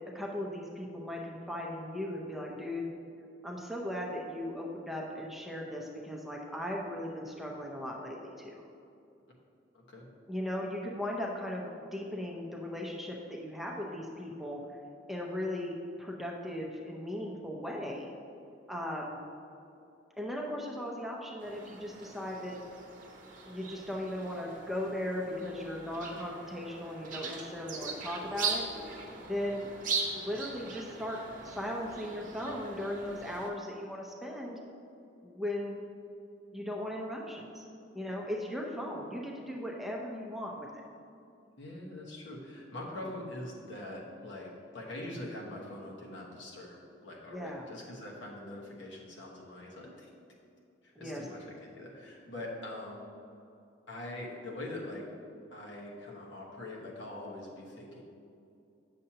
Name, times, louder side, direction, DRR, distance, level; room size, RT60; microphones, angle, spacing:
voice 1, 0.1-2.9 3.4-8.5 10.3-11.7 11.9-14.6 15.1-18.1 18.7-19.2 20.2-22.5 23.5-28.6 29.2-29.7 30.1-34.6 35.2-35.8 36.5-37.6 37.9-40.7 47.3-47.6 51.0-51.2, left 1 dB, ahead, -2 dB, 0.6 m, -37 dB
voice 2, 9.7-10.1 29.4-29.5 41.6-50.1 50.8-53.0 53.9-55.1 55.5-58.0, left 1 dB, 70° left, -3 dB, 1.3 m, -43 dB
sound 1, 21.4-33.5, right 4 dB, 45° right, 0.8 m, -40 dB
8.6 x 6.6 x 2.9 m, 2.6 s
head